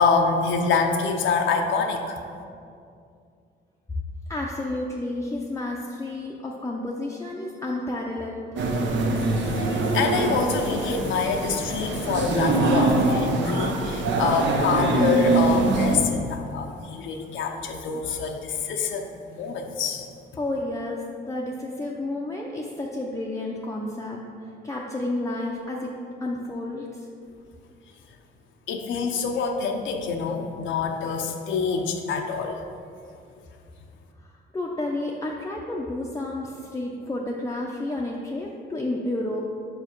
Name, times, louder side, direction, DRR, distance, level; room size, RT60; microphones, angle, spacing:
voice 1, 0.0-2.2 9.2-20.1 28.7-32.6, left 5 dB, 75° left, 3 dB, 0.6 m, -26 dB
voice 2, 4.3-8.6 20.4-24.2 24.6-25.9 26.2-27.1 34.2-39.5, left 2 dB, 15° left, -2 dB, 0.5 m, -31 dB
sound 1, 8.6-16.0, right 2 dB, 70° right, 0.7 m, -24 dB
4.9 x 4.7 x 4.5 m, 2.4 s
cardioid pair, 90°, 20 cm